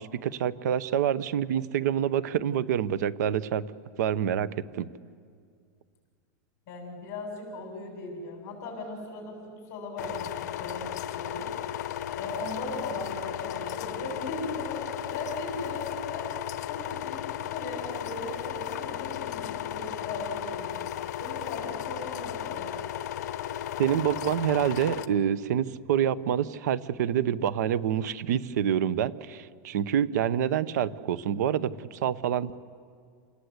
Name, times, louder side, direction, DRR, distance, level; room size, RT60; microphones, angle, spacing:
voice 1, 0.0-3.6 4.0-4.9 23.8-32.6, right 9 dB, 65° right, 17 dB, 0.8 m, -27 dB
voice 2, 6.7-11.5 12.2-16.3 16.7-20.8 21.2-22.7, left 2 dB, 30° left, 1 dB, 7.0 m, -38 dB
sound 1, 10.0-25.1, left 11 dB, 60° left, 0.9 m, -35 dB
27.5 x 19.5 x 8.0 m, 2.1 s
supercardioid pair, 170°, 10 cm